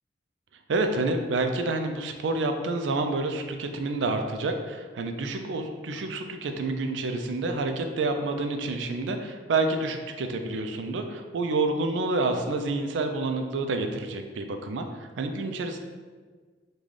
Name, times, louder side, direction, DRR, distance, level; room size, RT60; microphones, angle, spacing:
voice 1, 0.7-15.8, right 2 dB, 80° right, 6 dB, 0.4 m, -28 dB
3.8 x 2.3 x 3.2 m, 1.5 s
head